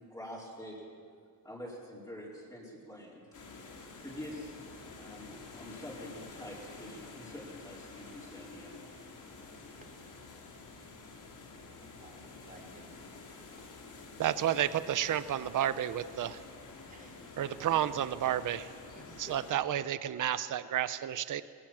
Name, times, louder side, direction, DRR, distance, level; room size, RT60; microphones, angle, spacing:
voice 1, 0.1-0.9 1.4-3.3 4.0-4.5 5.0-8.7, left 1 dB, 10° left, -6 dB, 4.5 m, -46 dB
sound 1, 3.3-19.5, left 3 dB, 60° left, 3.3 m, -49 dB
voice 2, 12.0-12.9 13.4-13.7 14.3-14.4 16.9-17.4 18.9-19.3, right 2 dB, 25° right, 1 dB, 3.8 m, -56 dB
voice 3, 14.2-16.4 17.4-18.7 19.2-21.4, right 11 dB, 60° right, 14 dB, 0.8 m, -31 dB
20.0 x 18.5 x 7.4 m, 2.2 s
wide cardioid pair, 145°, 36 cm